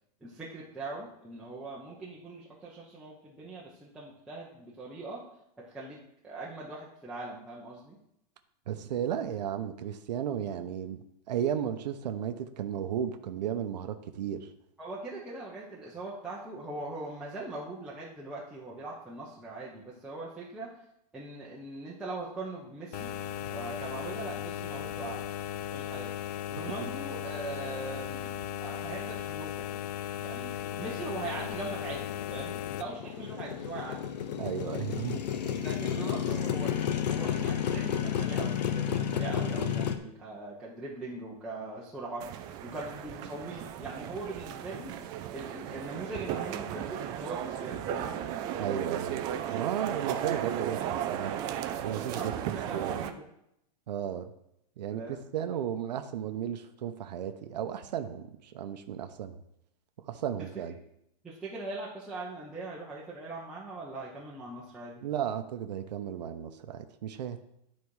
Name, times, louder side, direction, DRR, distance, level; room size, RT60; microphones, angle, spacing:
voice 1, 0.2-5.2 5.6-6.0 6.2-8.0 14.8-20.7 21.1-23.1 23.5-25.3 25.7-26.1 26.5-28.3 28.6-29.8 30.2-34.0 35.6-36.8 37.1-42.2 42.6-44.9 45.3-48.3 52.1-52.3 52.7-53.2 54.9-55.2 60.4-60.6 61.2-65.0, right 2 dB, 5° right, -7 dB, 0.9 m, -41 dB
voice 2, 8.7-11.0 11.3-14.5 34.4-35.2 48.6-49.2 49.5-51.4 51.8-52.3 52.7-53.0 53.9-54.3 54.8-59.4 60.1-60.7 65.0-67.4, right 9 dB, 85° right, 8 dB, 0.9 m, -34 dB
sound 1, 22.9-32.8, left 10 dB, 70° left, 0.5 m, -37 dB
Motorcycle, 30.6-40.0, left 9 dB, 85° left, 0.9 m, -32 dB
sound 2, 42.2-53.1, right 10 dB, 20° right, 0.3 m, -35 dB
11.0 x 4.2 x 4.8 m, 0.80 s
supercardioid pair, 165°, 21 cm